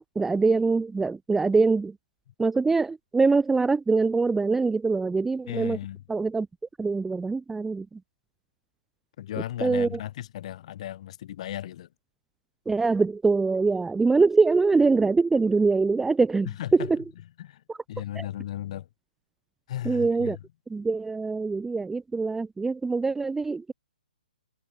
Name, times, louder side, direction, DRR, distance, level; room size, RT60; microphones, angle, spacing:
voice 1, 0.0-1.9 2.4-5.8 6.1-6.5 6.8-8.0 9.6-9.9 12.7-17.0 18.2-18.3 19.8-20.4 20.7-23.7, right 4 dB, 5° right, 0.5 m, -23 dB
voice 2, 5.5-6.0 9.2-11.9 16.4-16.9 17.4-18.9 19.7-20.4, left 12 dB, 45° left, 2.0 m, -35 dB
figure-of-eight pair, 130°, 5 cm